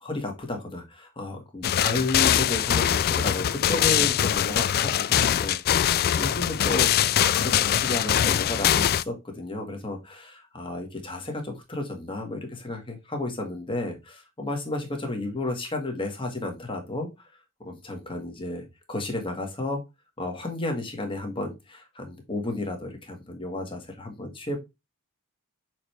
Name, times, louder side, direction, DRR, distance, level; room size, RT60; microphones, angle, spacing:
voice 1, 0.0-17.3 17.6-19.8 20.2-24.6, left 2 dB, 25° left, 2 dB, 1.7 m, -32 dB
sound 1, 1.6-9.0, left 10 dB, 45° left, 0.3 m, -23 dB
6.5 x 4.5 x 3.3 m, 0.23 s
head